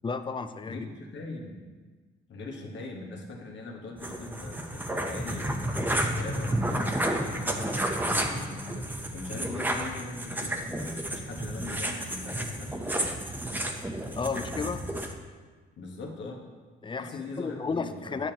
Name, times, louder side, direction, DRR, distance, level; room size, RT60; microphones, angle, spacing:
voice 1, 0.0-0.9 14.2-14.8 16.8-18.3, left 4 dB, 25° left, 10 dB, 0.5 m, -33 dB
voice 2, 0.6-1.6 2.3-13.1 15.8-16.4 17.0-18.2, left 2 dB, 70° left, 0 dB, 1.5 m, -41 dB
sound 1, 4.0-15.1, right 1 dB, 10° right, 0.8 m, -31 dB
9.6 x 7.0 x 3.0 m, 1.4 s
cardioid pair, 90°, 20 cm